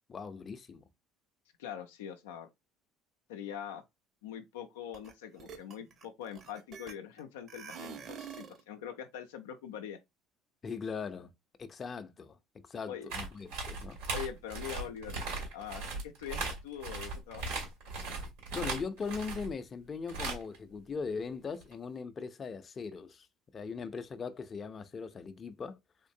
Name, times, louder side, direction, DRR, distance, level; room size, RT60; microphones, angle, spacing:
voice 1, 0.1-0.8 10.6-11.3 11.6-12.4 12.7-14.0 18.5-23.3 23.5-25.8, left 5 dB, 35° left, 0.6 m, -39 dB
voice 2, 1.6-2.5 3.3-3.8 4.2-10.0 12.9-13.1 14.1-15.2 15.5-17.5, left 9 dB, 90° left, 0.5 m, -43 dB
sound 1, 4.9-5.1 5.4-7.2 7.5-8.6, right 7 dB, 50° right, 1.0 m, -46 dB
sound 2, 13.1-19.5 20.1-20.6 21.6-21.7, right 3 dB, 80° right, 2.2 m, -38 dB
3.7 x 3.1 x 2.7 m
supercardioid pair, 80°, 0 cm